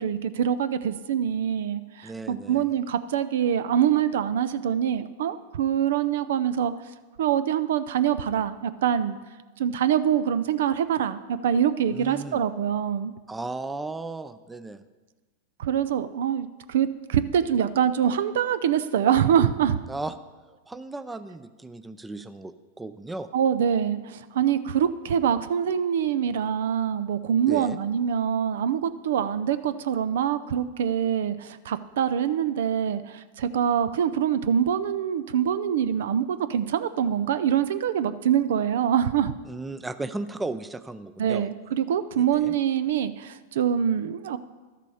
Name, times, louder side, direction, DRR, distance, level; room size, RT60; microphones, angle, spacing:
voice 1, 0.0-6.7 7.2-9.2 9.6-13.1 15.6-19.8 23.3-39.3 41.2-44.4, right 9 dB, 70° right, 13 dB, 0.5 m, -24 dB
voice 2, 2.0-2.7 11.9-12.4 13.3-14.8 19.9-20.1 20.7-23.3 27.5-27.8 39.5-41.5 42.2-42.5, right 2 dB, 10° right, 12 dB, 0.5 m, -35 dB
12.0 x 6.8 x 4.9 m, 1.3 s
hypercardioid pair, 105°, 0 cm